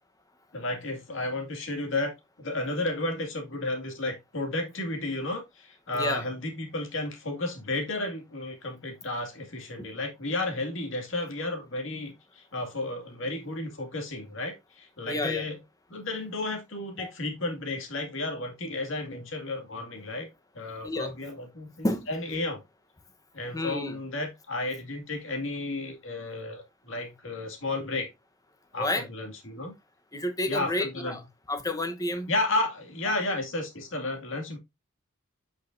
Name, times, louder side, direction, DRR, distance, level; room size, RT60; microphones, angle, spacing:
voice 1, 0.5-2.1 2.4-15.6 15.9-20.3 20.5-22.6 23.3-28.1 28.7-29.7 30.4-31.2 32.3-34.6, left 2 dB, 60° left, 2.2 m, -32 dB
voice 2, 15.1-15.4 17.0-17.1 20.8-21.1 21.8-22.1 23.5-24.0 28.8-29.1 30.1-31.2 31.5-32.3, left 1 dB, 15° left, 1.0 m, -30 dB
8.3 x 6.1 x 2.6 m
head